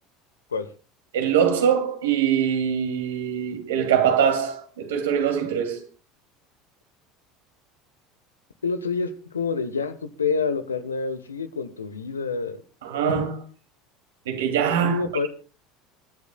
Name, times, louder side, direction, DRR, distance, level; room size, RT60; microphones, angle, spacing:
voice 1, 1.1-5.8 12.8-13.4 14.3-15.3, right 8 dB, 70° right, 2.9 m, -23 dB
voice 2, 8.6-12.6 14.8-15.3, left 5 dB, 80° left, 1.2 m, -27 dB
27.5 x 11.5 x 2.4 m
figure-of-eight pair, 70°, 0 cm